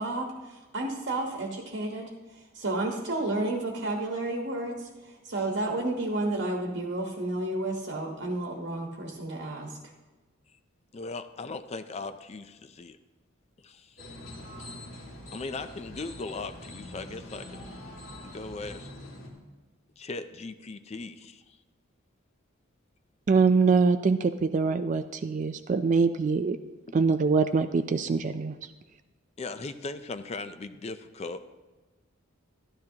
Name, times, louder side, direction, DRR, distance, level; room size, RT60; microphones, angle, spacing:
voice 1, 0.0-2.1 2.5-4.9 5.2-9.8, right 2 dB, 60° right, 1 dB, 1.2 m, -31 dB
voice 2, 10.9-13.0 13.6-14.0 15.3-17.7 18.2-18.9 20.0-21.6 29.4-31.4, left 3 dB, 30° left, 10 dB, 0.4 m, -38 dB
sound 1, 14.0-19.3, left 1 dB, 75° left, 2.3 m, -44 dB
voice 3, 23.3-26.6 26.9-28.6, right 4 dB, 40° right, 9 dB, 0.3 m, -24 dB
12.5 x 12.0 x 2.8 m, 1.2 s
head